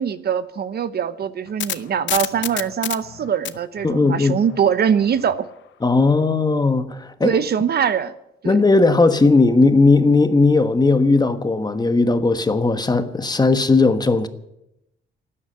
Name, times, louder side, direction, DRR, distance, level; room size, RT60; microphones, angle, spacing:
voice 1, 0.0-5.5 7.2-8.1 8.4-8.6, right 8 dB, 55° right, 0.9 m, -22 dB
sound 1, 1.2-5.4, left 12 dB, 70° left, 0.8 m, -30 dB
voice 2, 3.8-4.4 5.8-7.4 8.4-14.3, left 3 dB, 20° left, 1.2 m, -17 dB
13.0 x 9.8 x 9.9 m
cardioid pair, 90°, 20 cm